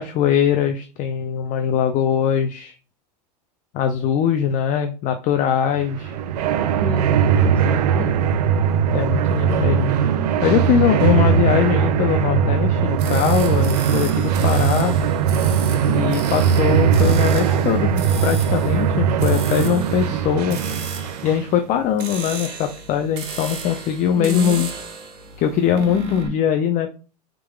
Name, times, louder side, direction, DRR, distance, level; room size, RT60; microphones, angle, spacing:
voice 1, 0.0-2.8 3.7-6.1 8.9-9.9 10.4-15.0 15.9-20.6 21.2-24.7 25.4-26.9, left 9 dB, 40° left, 7 dB, 0.6 m, -21 dB
sound 1, 5.8-21.5, right 8 dB, 70° right, 0.6 m, -19 dB
voice 2, 6.6-8.3 24.2-24.7, left 1 dB, 5° left, 1 dB, 0.8 m, -32 dB
sound 2, 13.0-26.3, right 4 dB, 50° right, 1.7 m, -35 dB
4.6 x 3.7 x 2.3 m, 0.34 s
hypercardioid pair, 105°, 21 cm